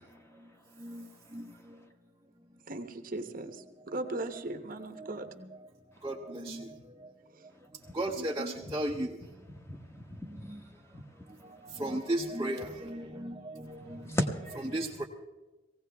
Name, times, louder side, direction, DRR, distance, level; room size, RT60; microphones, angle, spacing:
voice 1, 0.0-1.9 5.9-6.1 7.5-8.0 8.6-8.7 9.4-11.8 13.6-14.7, left 1 dB, 15° left, 3 dB, 1.1 m, -41 dB
voice 2, 2.7-5.3 6.3-6.7 7.4-7.5 8.2-8.5 13.8-14.2, right 2 dB, 45° right, 7 dB, 1.0 m, -39 dB
voice 3, 8.0-9.1 11.8-13.3 14.7-15.0, right 1 dB, 20° right, -1 dB, 0.8 m, -33 dB
18.5 x 16.0 x 3.5 m, 1.1 s
head